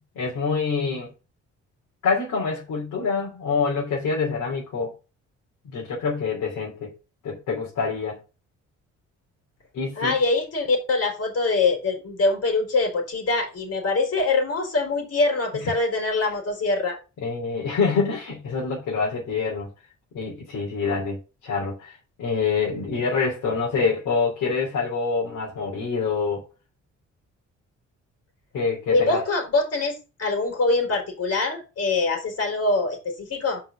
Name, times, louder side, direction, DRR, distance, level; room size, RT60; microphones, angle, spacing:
voice 1, 0.1-1.1 2.0-4.9 5.6-6.9 7.2-8.2 9.7-10.2 15.6-15.7 17.2-19.7 20.1-26.4 28.5-29.2, left 5 dB, 80° left, 3.3 m, -26 dB
voice 2, 10.0-17.0 28.9-33.6, left 3 dB, 55° left, 4.3 m, -24 dB
5.6 x 5.6 x 6.7 m
cardioid pair, 90°, 30 cm